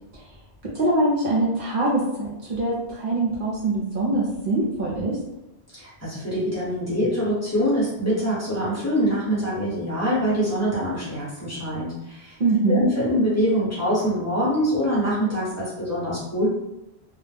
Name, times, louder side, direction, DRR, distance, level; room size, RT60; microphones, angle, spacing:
voice 1, 0.6-5.2 12.4-12.9, right 2 dB, 60° right, -6 dB, 0.7 m, -23 dB
voice 2, 5.8-12.3 12.6-16.5, equal, 15° left, -10 dB, 1.0 m, -24 dB
2.2 x 2.1 x 3.2 m, 0.91 s
omnidirectional pair, 1.1 m